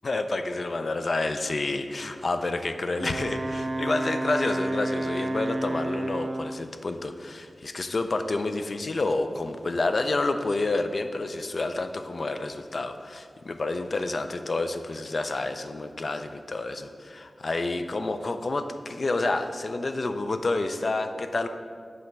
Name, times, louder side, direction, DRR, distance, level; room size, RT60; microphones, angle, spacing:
voice 1, 0.0-21.5, left 2 dB, 60° left, 8 dB, 0.4 m, -29 dB
Wind instrument woodwind instrument, 3.0-6.7, right 1 dB, 40° right, 0.3 m, -30 dB
8.1 x 3.2 x 5.2 m, 2.2 s
wide cardioid pair, 80°, 0 cm